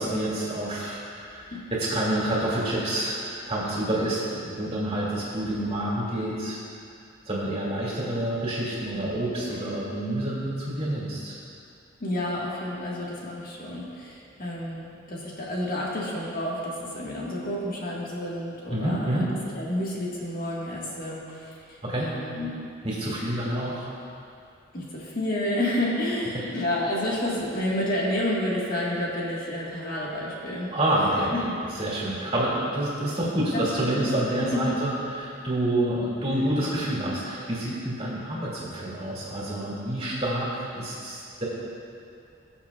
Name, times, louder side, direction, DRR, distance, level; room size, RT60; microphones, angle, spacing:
voice 1, 0.0-3.2 3.5-6.6 7.3-11.4 18.7-19.3 21.8-22.1 22.8-23.9 26.3-26.4 30.7-31.3 31.8-41.4, right 1 dB, 30° right, -6 dB, 2.3 m, -28 dB
voice 2, 12.0-19.3 19.5-21.6 22.0-22.6 24.7-30.7 31.3-31.6 33.5-34.8, left 1 dB, 45° left, -5 dB, 1.6 m, -30 dB
20.0 x 7.2 x 2.4 m, 2.5 s
head